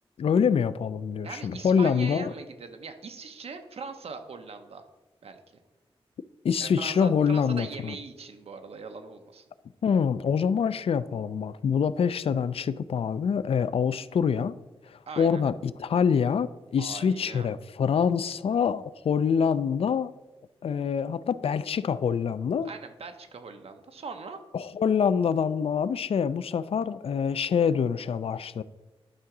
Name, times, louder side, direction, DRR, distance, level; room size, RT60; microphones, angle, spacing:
voice 1, 0.2-2.3 6.4-7.9 9.8-14.6 14.9-20.1 20.6-22.7 24.5-28.6, left 6 dB, 70° left, 16 dB, 0.3 m, -25 dB
voice 2, 1.2-4.8 5.2-5.6 6.6-9.4 15.1-15.4 16.8-17.5 22.6-24.4, right 4 dB, 80° right, 7 dB, 0.9 m, -41 dB
11.0 x 3.8 x 6.0 m, 1.1 s
wide cardioid pair, 160°, 10 cm